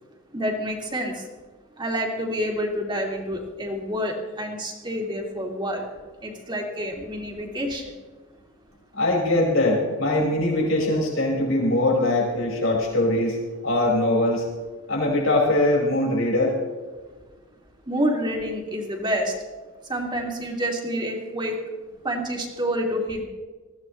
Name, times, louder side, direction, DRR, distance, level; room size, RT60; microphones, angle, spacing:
voice 1, 0.3-1.2 1.8-5.8 6.2-7.8 17.9-19.3 19.9-21.5 22.0-23.3, equal, 20° right, 1 dB, 2.6 m, -28 dB
voice 2, 8.9-13.4 13.6-14.4 14.9-16.6, left 1 dB, 80° left, -2 dB, 5.2 m, -22 dB
21.0 x 16.0 x 3.2 m, 1.4 s
head